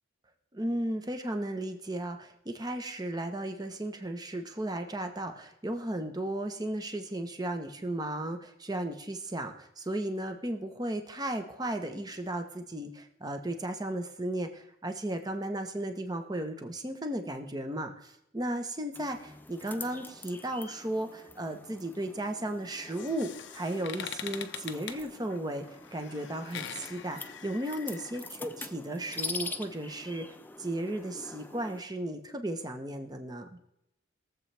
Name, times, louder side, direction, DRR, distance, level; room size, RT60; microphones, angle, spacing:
voice 1, 0.5-25.6 25.9-30.3 30.6-33.5, right 1 dB, 20° right, 6 dB, 1.0 m, -35 dB
sound 1, 18.9-31.8, left 3 dB, 10° left, 0.4 m, -45 dB
sound 2, 22.7-28.3, left 8 dB, 65° left, 0.7 m, -43 dB
21.5 x 7.5 x 3.4 m, 0.82 s
head